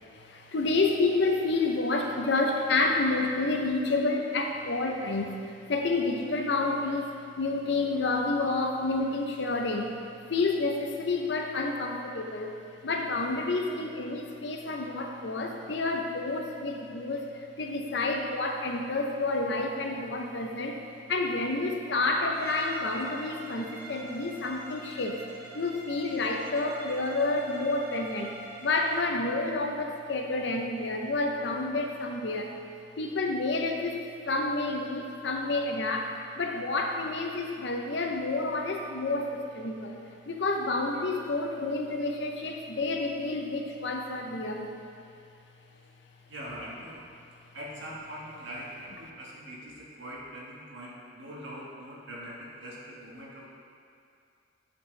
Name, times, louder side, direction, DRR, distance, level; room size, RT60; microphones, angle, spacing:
voice 1, 0.1-7.1 7.4-12.5 12.8-17.3 17.6-20.8 21.1-25.2 25.5-32.5 33.0-40.0 40.3-44.7, left 3 dB, 65° left, 2 dB, 0.6 m, -29 dB
Bowed string instrument, 22.3-29.1, right 1 dB, 50° right, 0.9 m, -44 dB
voice 2, 46.3-47.0 47.5-53.5, equal, 75° right, -5 dB, 1.5 m, -42 dB
9.5 x 4.3 x 3.2 m, 2.5 s
head